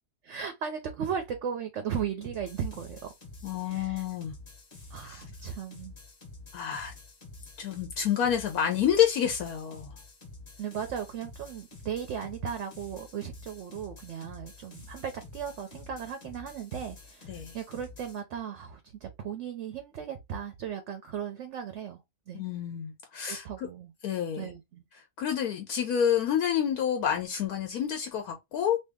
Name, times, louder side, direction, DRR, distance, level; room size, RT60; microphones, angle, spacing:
voice 1, 0.2-3.1 3.6-4.0 4.9-5.9 10.6-22.0 22.3-22.4 23.2-23.9 24.3-24.9, right 8 dB, 65° right, 0.8 m, -36 dB
sound 1, 2.2-18.2, left 3 dB, 35° left, 0.7 m, -49 dB
voice 2, 3.4-4.3 5.0-5.2 6.5-6.9 7.6-9.9 17.3-17.5 22.3-23.4 24.0-24.5 25.2-28.8, left 9 dB, 75° left, 1.1 m, -28 dB
2.8 x 2.8 x 3.4 m
omnidirectional pair, 1.7 m